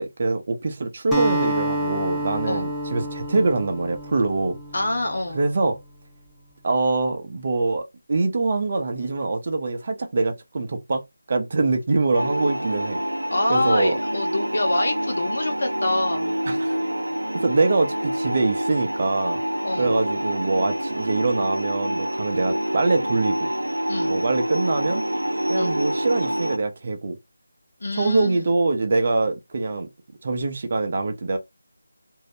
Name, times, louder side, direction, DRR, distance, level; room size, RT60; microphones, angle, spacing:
voice 1, 0.0-4.6 5.3-5.8 6.6-11.0 11.3-13.0 13.5-14.0 16.5-16.8 17.3-19.4 19.8-23.5 24.1-25.0 25.5-27.2 28.0-29.9 30.2-31.4, right 3 dB, 40° right, 0.7 m, -24 dB
Acoustic guitar, 1.1-5.6, right 1 dB, ahead, 0.6 m, -29 dB
voice 2, 4.7-5.4 13.3-16.3 19.6-20.0 23.9-24.2 25.5-25.8 27.8-28.6, left 2 dB, 60° left, 1.1 m, -26 dB
sound 1, 12.1-26.6, equal, 85° right, 0.5 m, -27 dB
2.7 x 2.1 x 3.2 m
figure-of-eight pair, 165°, 0 cm